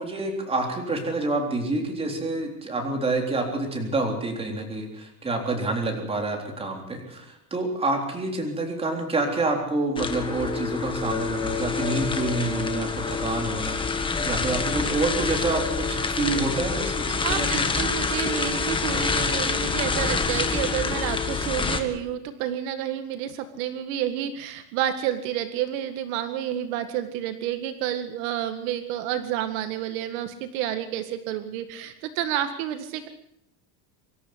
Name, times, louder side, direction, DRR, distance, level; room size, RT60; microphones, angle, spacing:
voice 1, 0.0-17.7, right 2 dB, 15° right, 2 dB, 3.9 m, -28 dB
sound 1, 10.0-21.8, left 4 dB, 10° left, 1.6 m, -27 dB
voice 2, 17.2-33.1, right 11 dB, 65° right, 8 dB, 1.9 m, -30 dB
25.5 x 13.5 x 8.0 m, 0.79 s
cardioid pair, 160°, 44 cm